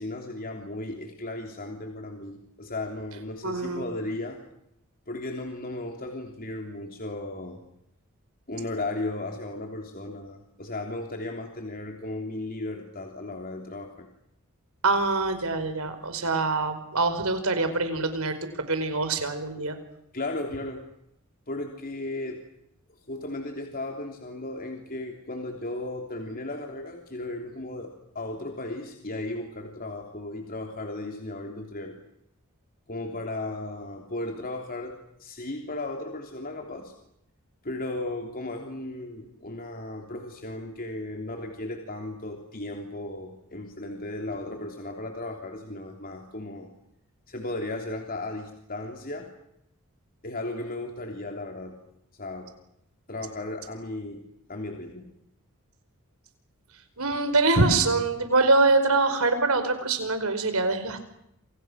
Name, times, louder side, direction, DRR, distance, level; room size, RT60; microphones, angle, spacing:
voice 1, 0.0-4.4 5.1-7.6 8.5-14.1 20.1-20.8 21.5-22.4 23.1-32.0 32.9-36.9 37.6-46.7 47.3-49.3 50.2-51.8 52.1-52.5 53.1-54.2 54.5-55.1, left 2 dB, 40° left, 3 dB, 3.3 m, -35 dB
voice 2, 3.4-3.8 14.8-19.7 57.0-61.0, right 3 dB, 70° right, 9 dB, 5.0 m, -24 dB
29.0 x 28.0 x 6.4 m, 0.78 s
head